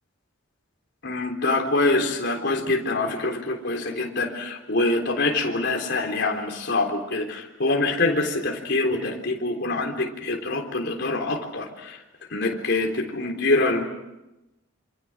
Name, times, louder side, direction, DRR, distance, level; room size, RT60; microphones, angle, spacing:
voice 1, 1.0-12.0 12.3-13.8, left 2 dB, 60° left, 2 dB, 3.7 m, -25 dB
27.5 x 26.5 x 6.2 m, 0.97 s
head